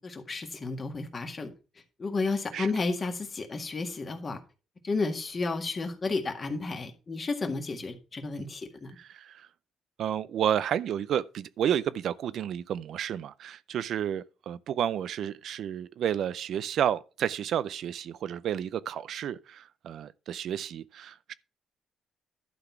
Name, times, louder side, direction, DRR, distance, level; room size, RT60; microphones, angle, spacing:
voice 1, 0.0-1.5 2.0-4.4 4.8-8.9, left 3 dB, 35° left, 1.8 m, -32 dB
voice 2, 9.0-9.5 10.0-21.3, right 9 dB, 70° right, 0.4 m, -31 dB
11.5 x 4.0 x 5.8 m
cardioid pair, 90°, 0 cm